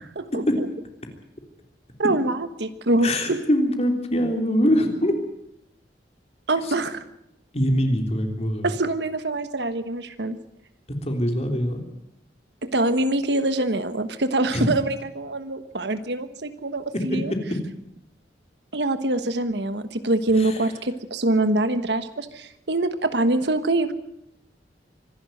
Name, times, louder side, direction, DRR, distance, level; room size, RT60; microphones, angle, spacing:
voice 1, 2.0-3.4 6.5-7.0 8.6-10.4 12.6-17.3 18.7-23.9, right 2 dB, 75° right, 11 dB, 1.3 m, -24 dB
voice 2, 3.0-5.2 6.6-6.7 7.5-8.7 11.0-11.8 14.5-14.7 17.1-17.2 20.4-20.6, equal, 35° left, 4 dB, 3.4 m, -23 dB
25.0 x 11.5 x 9.2 m, 0.80 s
head